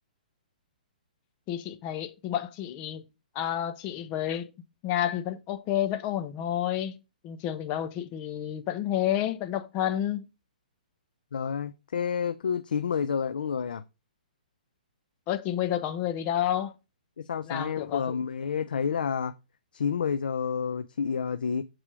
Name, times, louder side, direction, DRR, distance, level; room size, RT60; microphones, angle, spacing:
voice 1, 1.5-3.0 3.3-4.5 4.8-7.0 7.2-10.2 15.3-16.7 17.5-18.2, left 11 dB, 30° left, 1.0 m, -30 dB
voice 2, 11.3-13.8 17.2-19.3 19.7-21.6, left 6 dB, 75° left, 0.6 m, -29 dB
7.6 x 4.8 x 4.8 m
hypercardioid pair, 145°, 5 cm